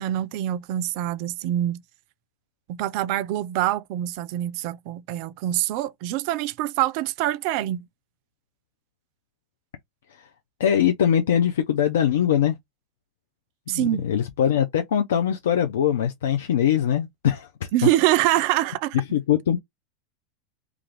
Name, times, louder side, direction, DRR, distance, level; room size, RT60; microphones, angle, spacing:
voice 1, 0.0-1.8 2.7-7.9 13.7-14.0 17.7-19.0, right 14 dB, 55° right, 0.3 m, -25 dB
voice 2, 10.6-12.6 13.7-17.9 18.9-19.6, left 9 dB, 75° left, 0.4 m, -22 dB
2.4 x 2.3 x 3.2 m
hypercardioid pair, 95°, 0 cm